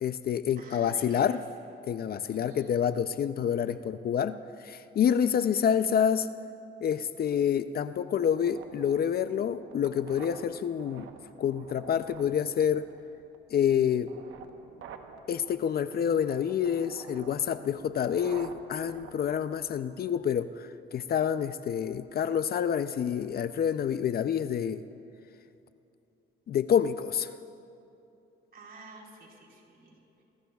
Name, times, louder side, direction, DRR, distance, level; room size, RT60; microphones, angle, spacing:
voice 1, 0.0-1.4 1.9-6.3 6.8-11.1 11.4-12.9 13.5-14.1 15.3-24.8 26.5-27.3, left 8 dB, 50° left, 12 dB, 0.5 m, -28 dB
voice 2, 0.6-1.4 2.2-2.8 28.5-30.2, right 3 dB, 50° right, -2 dB, 4.4 m, -51 dB
sound 1, 8.2-20.2, right 6 dB, 80° right, 1.1 m, -50 dB
27.0 x 21.5 x 2.4 m, 2.7 s
cardioid pair, 90°, 20 cm